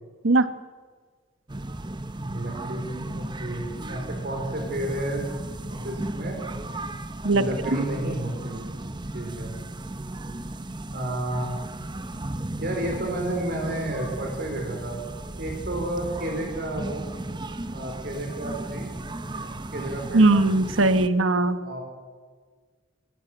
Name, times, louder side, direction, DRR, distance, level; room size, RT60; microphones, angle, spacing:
sound 1, 1.5-21.1, right 1 dB, 25° right, 0.8 m, -35 dB
voice 1, 2.1-5.4 5.6-6.4 7.3-8.6 9.1-9.5 10.9-11.5 12.6-15.0 15.4-17.1 17.7-18.9 19.3-20.2 21.6-21.8, right 1 dB, 55° right, 1 dB, 4.1 m, -31 dB
voice 2, 20.1-21.6, right 2 dB, 90° right, 11 dB, 1.1 m, -19 dB
29.0 x 12.0 x 7.8 m, 1.5 s
head